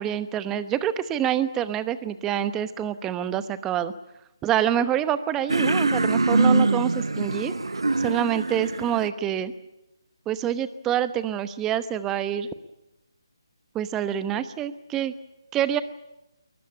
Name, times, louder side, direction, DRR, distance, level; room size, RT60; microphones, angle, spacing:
voice 1, 0.0-3.9 4.4-7.5 8.0-9.5 10.3-12.5 13.7-15.1 15.5-15.8, right 10 dB, 15° right, 14 dB, 0.9 m, -26 dB
sound 1, 5.5-9.1, right 3 dB, 80° right, 0.8 m, -23 dB
21.5 x 20.0 x 9.8 m, 0.94 s
figure-of-eight pair, 150°, 3 cm